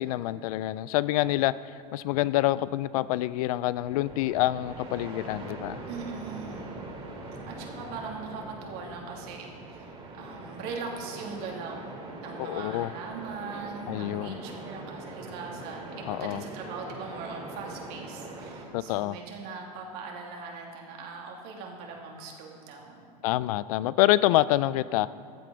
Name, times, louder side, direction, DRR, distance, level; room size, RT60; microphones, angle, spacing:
voice 1, 0.0-1.5 1.9-5.8 12.4-12.9 13.9-14.4 16.1-16.4 18.7-19.1 23.2-25.1, left 15 dB, 60° left, 17 dB, 0.4 m, -26 dB
sound 1, 3.8-18.6, right 2 dB, 25° right, 2.4 m, -42 dB
voice 2, 5.9-6.7 7.5-23.1, right 4 dB, 50° right, 0 dB, 2.6 m, -40 dB
14.5 x 9.2 x 5.1 m, 2.4 s
hypercardioid pair, 105°, 21 cm